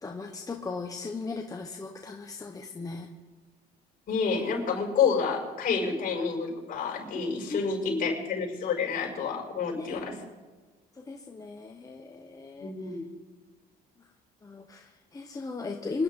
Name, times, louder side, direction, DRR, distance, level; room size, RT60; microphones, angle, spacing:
voice 1, 0.0-3.1 5.9-6.0 7.5-7.6 7.9-8.2 9.8-10.1 10.9-12.7 14.4-16.0, left 3 dB, 20° left, 3 dB, 1.2 m, -36 dB
voice 2, 4.1-10.2 12.6-13.0, left 5 dB, 55° left, -1 dB, 6.3 m, -29 dB
26.5 x 11.0 x 3.8 m, 1.3 s
cardioid pair, 110°, 17 cm